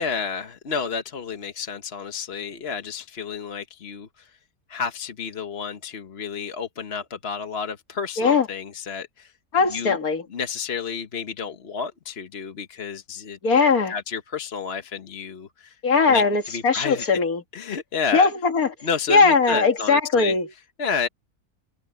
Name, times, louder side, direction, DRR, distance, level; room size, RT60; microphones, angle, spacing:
voice 1, 0.0-4.3 4.7-9.3 9.7-10.0 10.3-13.4 13.9-15.8 16.1-16.2 16.5-17.1 17.5-18.3 18.8-20.4 20.8-21.1, left 6 dB, 45° left, 1.3 m, -30 dB
voice 2, 8.2-8.5 9.5-10.2 13.4-13.9 15.8-17.4 18.1-18.7 19.1-20.5, left 4 dB, 65° left, 2.4 m, -19 dB
omnidirectional pair, 1.6 m